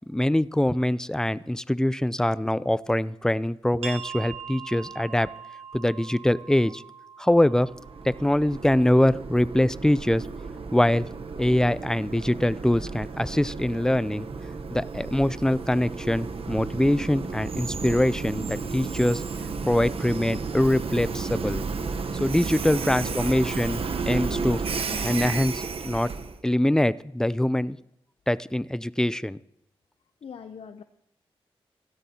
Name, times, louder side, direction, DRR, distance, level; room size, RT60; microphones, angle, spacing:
voice 1, 0.1-5.3 5.7-6.8 7.2-7.7 8.1-10.2 10.7-11.1 11.4-14.3 14.7-19.2 19.6-21.7 22.1-24.6 24.9-26.1 26.4-27.8 28.3-29.4, left 1 dB, 5° left, 17 dB, 0.5 m, -23 dB
sound 1, 3.8-9.2, right 7 dB, 90° right, 1.4 m, -42 dB
Train, 7.6-26.4, right 4 dB, 70° right, 1.0 m, -33 dB
voice 2, 22.6-23.8 30.2-30.8, left 7 dB, 70° left, 9 dB, 0.6 m, -43 dB
16.5 x 12.5 x 2.9 m, 0.82 s
cardioid pair, 45°, 10 cm